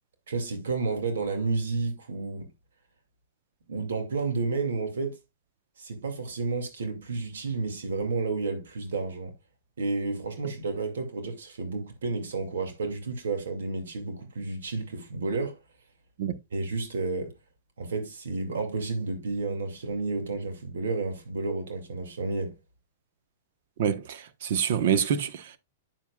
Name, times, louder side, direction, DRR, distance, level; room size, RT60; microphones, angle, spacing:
voice 1, 0.3-2.5 3.7-5.2 5.8-9.3 9.8-15.6 16.5-17.3 17.8-22.6, right 3 dB, 85° right, 2.3 m, -31 dB
voice 2, 23.8-25.6, right 8 dB, 65° right, 1.1 m, -26 dB
9.0 x 7.2 x 2.3 m
hypercardioid pair, 135°, 0 cm